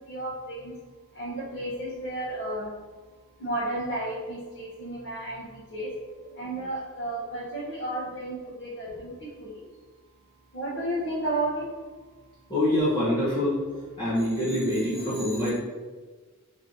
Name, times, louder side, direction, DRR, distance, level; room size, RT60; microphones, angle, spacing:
voice 1, 0.1-0.7 1.2-2.7 3.4-5.4 5.7-5.9 6.4-9.1 9.4-9.5 10.5-11.6, right 1 dB, 55° left, -11 dB, 1.1 m, -32 dB
voice 2, 12.5-13.6 14.0-15.5, left 1 dB, 20° left, -11 dB, 0.9 m, -25 dB
3.1 x 2.7 x 3.9 m, 1.4 s
head